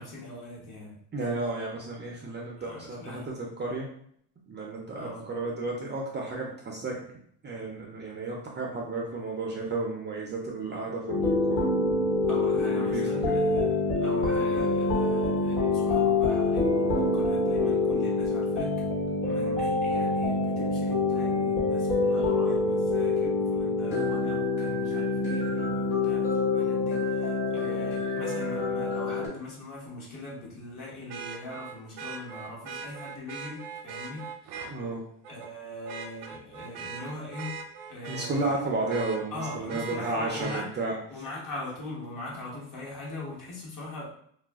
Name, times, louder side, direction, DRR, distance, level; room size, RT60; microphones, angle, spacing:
voice 1, 0.0-1.0 2.6-3.3 4.9-5.3 12.3-18.7 19.2-34.3 35.3-37.6 37.9-38.5 39.3-40.7 41.1-44.0, left 2 dB, 45° left, -4 dB, 1.2 m, -41 dB
voice 2, 1.1-3.9 4.5-7.0 7.4-11.6 12.7-13.3 19.2-19.6 34.7-35.0 38.1-40.9, right 3 dB, 25° right, -2 dB, 0.5 m, -33 dB
sound 1, 11.1-29.3, left 3 dB, 80° left, 1.4 m, -26 dB
Vehicle horn car horn honking, 28.3-28.4 31.1-34.7 35.2-35.5 35.9-38.5 38.9-40.6 42.5-42.6, right 5 dB, 85° right, 0.6 m, -40 dB
2.4 x 2.2 x 3.4 m, 0.66 s
cardioid pair, 115°, 44 cm